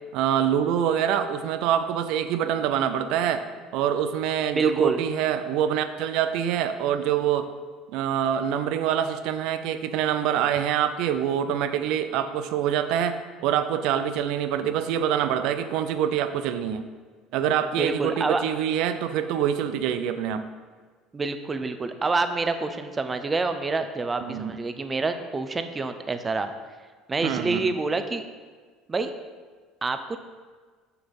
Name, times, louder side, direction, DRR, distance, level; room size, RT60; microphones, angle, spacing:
voice 1, 0.1-3.4 3.7-7.5 7.9-16.8 17.3-20.5 24.2-24.6 27.2-27.6, right 9 dB, 75° right, 10 dB, 0.6 m, -25 dB
voice 2, 4.5-5.0 17.8-18.4 21.1-26.5 27.1-28.3 28.9-29.1 29.8-30.2, right 3 dB, 20° right, 9 dB, 0.7 m, -27 dB
6.9 x 6.3 x 5.4 m, 1.5 s
supercardioid pair, 100°, 0 cm